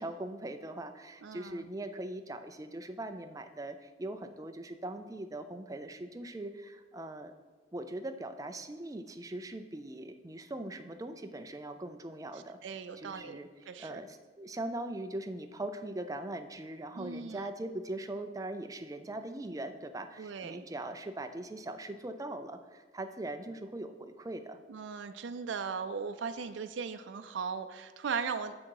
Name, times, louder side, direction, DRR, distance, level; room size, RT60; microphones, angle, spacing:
voice 1, 0.0-7.3 7.7-13.5 13.8-24.6, right 1 dB, 20° right, 7 dB, 0.4 m, -41 dB
voice 2, 1.2-1.7 12.6-13.4 13.7-14.0 16.9-17.4 20.2-20.7 24.7-28.5, right 5 dB, 85° right, 9 dB, 0.4 m, -38 dB
7.3 x 6.2 x 4.7 m, 1.4 s
head